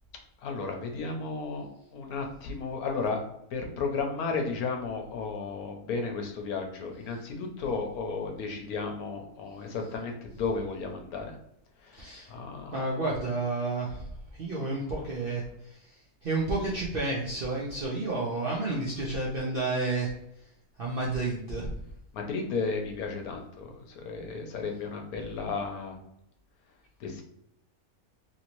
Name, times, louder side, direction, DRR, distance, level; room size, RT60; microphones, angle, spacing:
voice 1, 0.4-1.7 1.9-11.3 11.8-13.0 22.1-26.0 27.0-27.2, left 4 dB, 75° left, 3 dB, 1.1 m, -34 dB
voice 2, 11.9-12.3 12.7-14.1 14.4-15.9 16.2-20.1 20.8-21.7, right 2 dB, 60° right, -4 dB, 0.6 m, -31 dB
3.0 x 2.7 x 2.9 m, 0.76 s
omnidirectional pair, 1.6 m